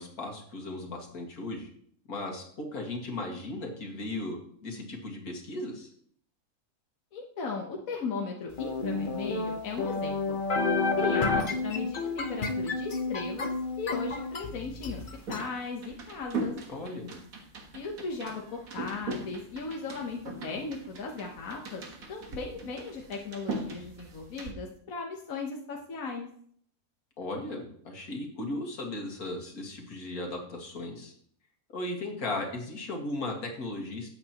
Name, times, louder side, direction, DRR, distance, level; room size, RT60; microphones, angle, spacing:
voice 1, 0.0-1.7 2.1-5.9 16.7-17.1 27.2-31.1 31.7-34.2, left 2 dB, 85° left, 1 dB, 2.4 m, -36 dB
voice 2, 7.1-10.4 11.0-13.5 13.8-15.0 15.3-16.5 17.7-21.8 22.1-26.3, left 4 dB, 70° left, 0 dB, 1.5 m, -37 dB
sound 1, 8.6-15.4, left 3 dB, 40° left, 0.9 m, -30 dB
sound 2, 14.8-24.5, right 2 dB, 70° right, 1.8 m, -40 dB
13.0 x 8.1 x 2.9 m, 0.62 s
omnidirectional pair, 1.5 m